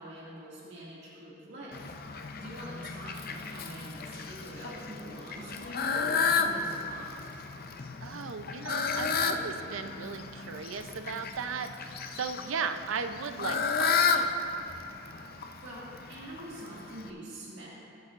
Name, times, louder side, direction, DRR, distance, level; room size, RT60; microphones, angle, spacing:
voice 1, 0.0-7.3 15.6-17.7, right 1 dB, 60° right, -7 dB, 2.0 m, -45 dB
Fowl, 1.7-17.1, left 5 dB, 50° left, 0.6 m, -33 dB
voice 2, 8.0-14.4, right 5 dB, 90° right, 8 dB, 0.5 m, -37 dB
20.5 x 8.2 x 2.5 m, 2.9 s
head